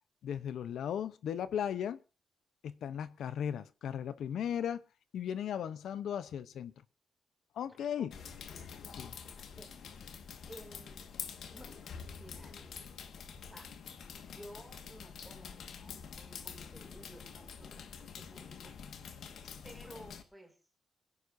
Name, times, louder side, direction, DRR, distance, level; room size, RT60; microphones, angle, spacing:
voice 1, 0.2-2.0 2.6-4.8 5.1-6.7 7.6-8.1 9.0-9.1, left 9 dB, 85° left, 0.7 m, -36 dB
voice 2, 7.7-8.3 9.4-9.8 10.5-11.1 11.5-12.9 13.4-13.7 14.3-18.7 19.6-20.6, equal, ahead, 2.6 m, -54 dB
sound 1, 8.1-20.2, left 6 dB, 70° left, 1.7 m, -47 dB
26.0 x 11.0 x 2.7 m
wide cardioid pair, 175°, 0 cm